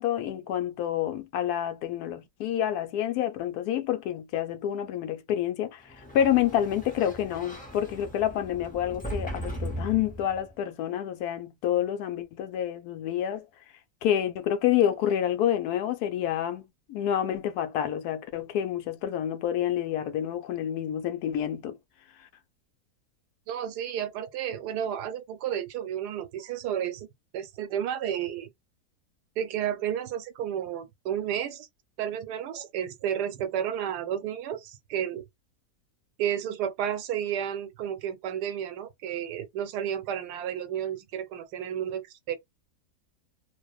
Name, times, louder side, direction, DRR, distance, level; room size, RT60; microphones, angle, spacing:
voice 1, 0.0-5.8 6.1-13.4 14.0-16.6 16.9-21.8, left 10 dB, 75° left, 1.1 m, -28 dB
Sliding door, 5.9-10.6, right 1 dB, 10° left, 0.4 m, -38 dB
voice 2, 23.5-27.1 27.3-28.5 29.4-31.7 32.0-35.2 36.2-42.4, right 9 dB, 85° right, 1.2 m, -32 dB
2.8 x 2.0 x 2.3 m
omnidirectional pair, 1.7 m